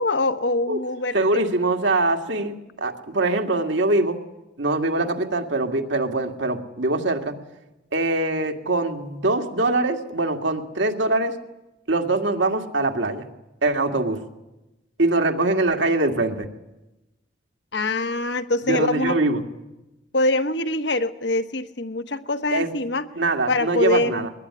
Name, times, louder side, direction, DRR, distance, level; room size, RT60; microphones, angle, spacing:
voice 1, 0.0-1.1 17.7-19.2 20.1-23.1 23.5-24.3, left 2 dB, 65° left, 11 dB, 1.2 m, -24 dB
voice 2, 1.1-4.2 4.6-7.3 7.9-11.3 11.9-13.3 13.6-14.2 15.0-16.5 18.6-19.4 22.5-22.7 23.2-24.3, right 2 dB, 70° right, 4 dB, 2.2 m, -23 dB
22.5 x 20.5 x 9.8 m, 1.0 s
head